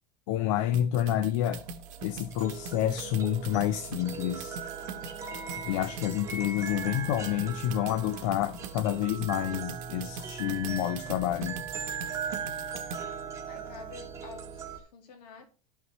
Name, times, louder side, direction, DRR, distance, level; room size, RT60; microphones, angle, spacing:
voice 1, 0.3-1.6 2.0-4.6 5.6-11.6, left 11 dB, 55° left, 0.6 m, -29 dB
sound 1, 0.7-13.0, right 5 dB, 55° right, 1.1 m, -43 dB
sound 2, 1.6-14.8, right 6 dB, 15° right, 1.1 m, -39 dB
voice 2, 13.0-15.5, left 6 dB, 80° left, 2.3 m, -49 dB
12.5 x 5.7 x 3.1 m
supercardioid pair, 170°, 20 cm